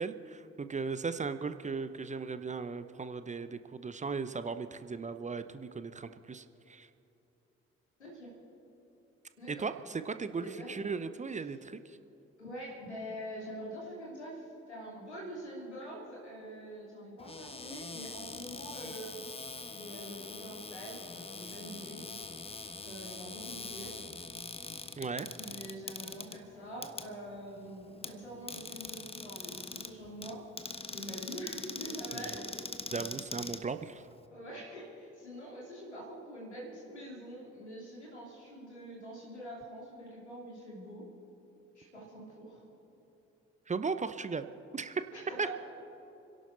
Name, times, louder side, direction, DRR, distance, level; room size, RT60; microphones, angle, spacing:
voice 1, 0.0-6.9 9.5-12.0 25.0-25.3 32.9-34.0 43.7-44.5 44.7-45.0 45.4-45.5, right 4 dB, 20° right, 11 dB, 0.8 m, -37 dB
voice 2, 8.0-8.3 9.4-9.7 10.4-10.9 12.4-19.4 19.7-22.0 22.8-23.9 25.4-30.4 30.9-32.4 34.3-41.1 41.7-42.6 45.1-45.5, equal, 85° left, -4 dB, 2.8 m, -45 dB
Cupboard open or close, 17.2-34.3, left 3 dB, 15° left, 1.0 m, -43 dB
30.0 x 11.5 x 4.0 m, 3.0 s
figure-of-eight pair, 40°, 33 cm